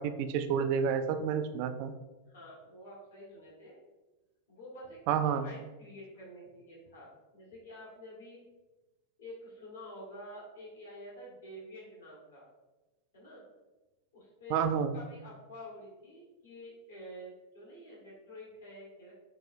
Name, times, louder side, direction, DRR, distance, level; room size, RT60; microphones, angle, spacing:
voice 1, 0.0-1.9 5.1-5.4 14.5-15.0, right 7 dB, 45° right, 9 dB, 0.3 m, -29 dB
voice 2, 2.3-3.8 4.5-8.4 9.2-12.4 13.1-13.4 14.1-19.1, equal, 65° left, -5 dB, 1.3 m, -49 dB
5.6 x 2.4 x 2.5 m, 1.1 s
figure-of-eight pair, 90°, 0 cm